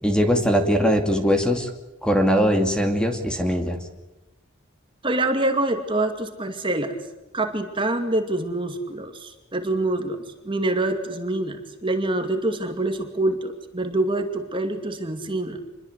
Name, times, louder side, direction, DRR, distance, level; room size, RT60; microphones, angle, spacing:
voice 1, 0.0-1.7 2.0-3.8, equal, 5° left, 4 dB, 2.5 m, -21 dB
voice 2, 5.0-6.9 7.3-10.2 10.4-15.6, right 2 dB, 25° right, 5 dB, 2.4 m, -25 dB
27.5 x 22.0 x 8.2 m, 0.99 s
head